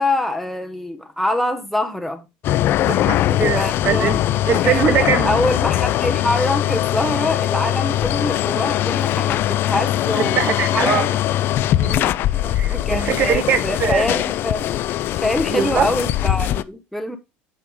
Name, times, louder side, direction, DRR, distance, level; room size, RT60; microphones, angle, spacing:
voice 1, 0.0-2.3 3.3-4.1 4.5-10.4 10.7-11.1 12.3-14.7 15.2-17.2, left 1 dB, ahead, 0.8 m, -25 dB
sound 1, 2.4-16.6, left 13 dB, 55° left, 0.4 m, -21 dB
voice 2, 2.8-4.2 4.5-5.4 10.4-11.1 11.8-12.1 12.5-14.1 15.5-15.9, right 8 dB, 45° right, 1.1 m, -22 dB
7.9 x 4.8 x 3.6 m
cardioid pair, 125°, 5 cm